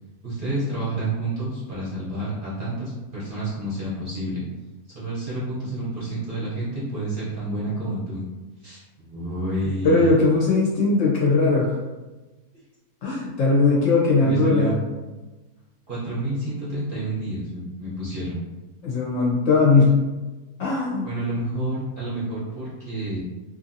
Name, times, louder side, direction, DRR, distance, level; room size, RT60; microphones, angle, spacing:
voice 1, 0.2-4.4 4.9-8.3 8.6-10.1 14.2-14.7 15.9-18.4 21.0-23.2, right 1 dB, 45° right, -8 dB, 0.7 m, -29 dB
voice 2, 9.8-11.7 13.0-14.8 18.8-20.0 20.6-21.1, left 3 dB, 65° left, -3 dB, 0.9 m, -19 dB
2.6 x 2.6 x 2.6 m, 1.2 s
omnidirectional pair, 1.6 m